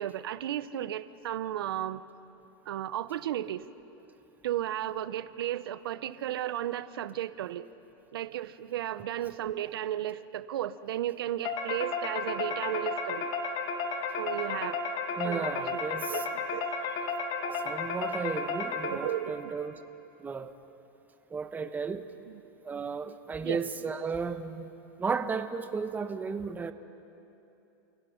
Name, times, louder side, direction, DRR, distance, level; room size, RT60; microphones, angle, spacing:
voice 1, 0.0-2.0 2.7-3.6 4.4-7.7 8.1-13.3 14.2-14.8 15.2-16.7 17.4-17.6 18.4-18.6 18.8-19.6 23.4-23.6, right 12 dB, 85° right, 14 dB, 0.7 m, -34 dB
sound 1, 11.4-19.3, left 4 dB, 40° left, 2.1 m, -33 dB
voice 2, 15.2-16.2 17.6-19.7 20.2-20.5 21.3-22.1 22.6-24.7 25.0-26.7, right 5 dB, 15° right, 9 dB, 0.9 m, -34 dB
28.5 x 17.0 x 5.8 m, 2.9 s
supercardioid pair, 130°, 12 cm